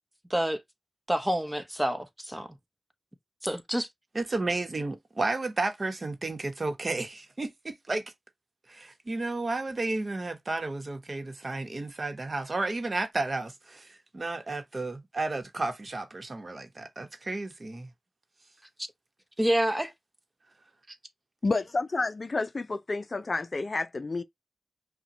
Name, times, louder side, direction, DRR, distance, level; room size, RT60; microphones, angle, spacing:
voice 1, 1.1-2.5 3.4-3.9 19.4-19.9, right 1 dB, 10° right, 0.9 m, -27 dB
voice 2, 4.1-8.0 8.7-13.9 14.1-17.9 20.9-21.0, right 2 dB, 45° right, 1.0 m, -32 dB
voice 3, 21.4-24.2, left 3 dB, 50° left, 0.4 m, -30 dB
5.7 x 2.2 x 2.9 m
cardioid pair, 50°, 0 cm